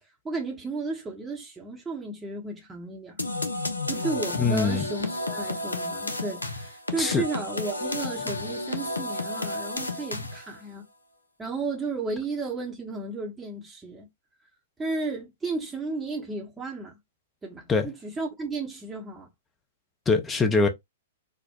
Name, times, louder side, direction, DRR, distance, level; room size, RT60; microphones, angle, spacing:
voice 1, 0.2-3.2 3.9-10.8 11.4-14.1 14.8-17.0 17.4-19.3, right 3 dB, 10° right, 0.8 m, -33 dB
sound 1, 3.2-10.6, left 2 dB, 80° left, 0.5 m, -32 dB
voice 2, 4.4-4.9 7.0-7.2 17.7-17.9 20.1-20.7, left 4 dB, 15° left, 0.6 m, -23 dB
4.3 x 2.1 x 2.2 m
figure-of-eight pair, 105°, 0 cm